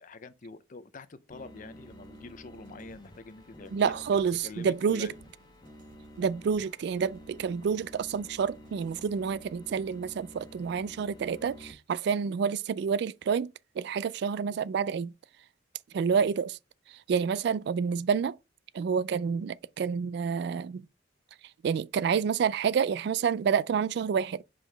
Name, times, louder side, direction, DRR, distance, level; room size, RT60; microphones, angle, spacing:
voice 1, 0.0-5.2 16.1-16.3, left 3 dB, 45° left, 0.6 m, -46 dB
sound 1, 1.3-11.7, equal, 20° left, 1.2 m, -50 dB
sound 2, 1.9-9.5, right 4 dB, 45° right, 0.9 m, -63 dB
voice 2, 3.7-5.1 6.2-13.5 13.8-15.1 15.9-16.6 16.9-18.4 18.7-20.9 21.6-24.4, right 6 dB, 60° right, 0.3 m, -28 dB
5.6 x 5.1 x 3.3 m
head